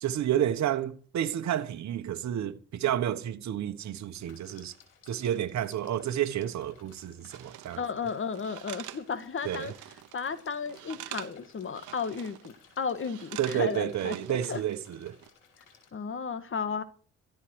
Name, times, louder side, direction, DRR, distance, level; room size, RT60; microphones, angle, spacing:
voice 1, 0.0-4.7 5.1-7.8 9.4-9.7 13.4-15.1, right 11 dB, 65° right, 1.4 m, -30 dB
sound 1, 4.1-15.9, left 6 dB, 90° left, 4.7 m, -59 dB
sound 2, 7.3-7.8 8.4-10.2 10.5-11.4 11.7-12.5 13.0-14.7 15.1-15.3, right 15 dB, 85° right, 1.0 m, -45 dB
voice 2, 7.8-9.7 10.1-14.6 15.9-16.8, left 5 dB, 40° left, 1.8 m, -34 dB
14.0 x 9.2 x 6.3 m
cardioid pair, 90°, 30 cm